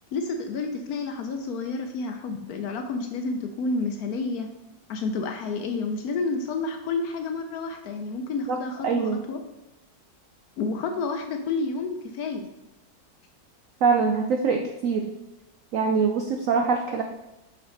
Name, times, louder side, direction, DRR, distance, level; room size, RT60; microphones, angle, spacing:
voice 1, 0.1-4.5 4.9-9.4 10.6-12.5, left 3 dB, 70° left, 5 dB, 0.9 m, -30 dB
voice 2, 8.8-9.2 13.8-15.1 15.7-17.0, right 5 dB, 90° right, 4 dB, 0.7 m, -23 dB
5.9 x 5.3 x 3.8 m, 0.95 s
omnidirectional pair, 2.0 m